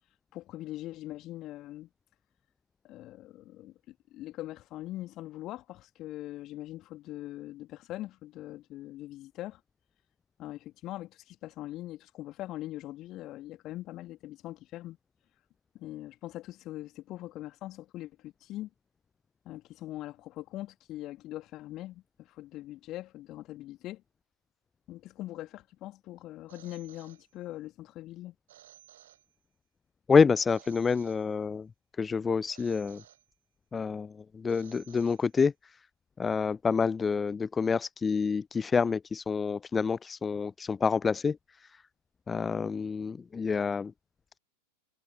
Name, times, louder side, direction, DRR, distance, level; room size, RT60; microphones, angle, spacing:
voice 1, 0.3-1.9 2.8-9.6 10.4-15.0 15.7-18.7 19.4-24.0 24.9-28.3, left 15 dB, 35° left, 2.7 m, -42 dB
Telephone, 26.5-27.7 28.5-29.7 30.5-31.7 32.5-33.7 34.5-35.7, right 13 dB, 60° right, 7.2 m, -58 dB
voice 2, 30.1-31.7 32.0-33.0 33.7-35.5 36.2-41.4 42.3-43.9, left 5 dB, 15° left, 0.4 m, -27 dB
figure-of-eight pair, 90°, 0 cm